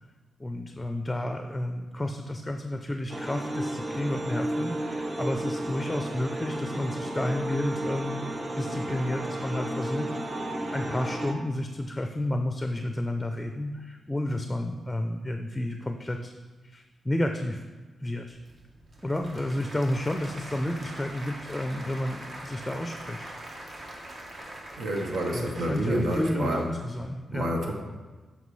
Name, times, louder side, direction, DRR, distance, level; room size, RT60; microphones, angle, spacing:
voice 1, 0.4-16.3 16.6-17.6 18.0-18.4 19.0-23.3 25.3-27.5, left 1 dB, 15° left, 5 dB, 0.5 m, -31 dB
sound 1, 3.1-11.3, right 1 dB, 25° right, 0.8 m, -33 dB
Applause / Crowd, 18.3-27.1, right 1 dB, 50° right, 1.1 m, -43 dB
voice 2, 24.8-26.7 27.3-27.7, right 1 dB, 75° right, 1 dB, 1.3 m, -28 dB
9.1 x 5.9 x 3.2 m, 1.3 s
cardioid pair, 85°, 0 cm